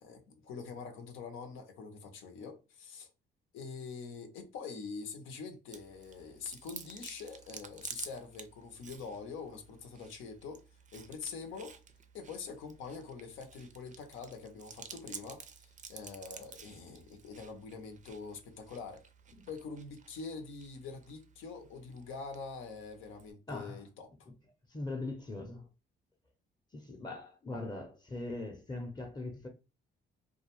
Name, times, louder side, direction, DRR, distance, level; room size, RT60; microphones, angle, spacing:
voice 1, 0.0-3.1 3.5-10.6 10.9-11.8 12.1-19.0 19.5-24.3, left 5 dB, 90° left, 0.7 m, -45 dB
Chewing mastication, 5.7-23.3, right 6 dB, 40° right, 0.4 m, -52 dB
voice 2, 23.5-23.8 24.3-24.4 24.7-25.7 26.7-29.5, left 2 dB, 20° left, 0.6 m, -41 dB
2.3 x 2.2 x 3.0 m
cardioid pair, 90°, 20 cm